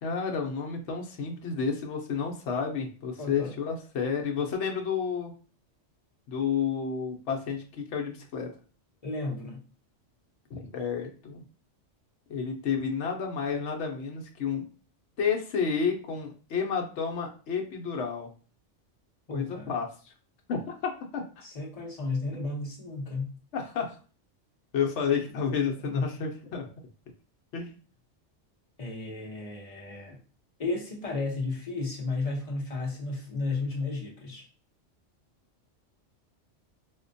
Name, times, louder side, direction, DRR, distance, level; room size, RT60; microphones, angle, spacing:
voice 1, 0.0-5.3 6.3-8.5 10.5-11.4 12.3-14.7 15.2-18.3 19.3-20.1 20.5-21.4 23.5-24.0 24.7-26.7 27.5-27.7, left 6 dB, 70° left, 2 dB, 0.9 m, -31 dB
voice 2, 3.2-3.5 9.0-9.6 19.3-19.7 21.4-23.3 25.8-26.1 28.8-30.2 30.6-34.5, left 3 dB, 35° left, -1 dB, 0.8 m, -33 dB
4.2 x 2.1 x 2.5 m, 0.38 s
omnidirectional pair, 1.3 m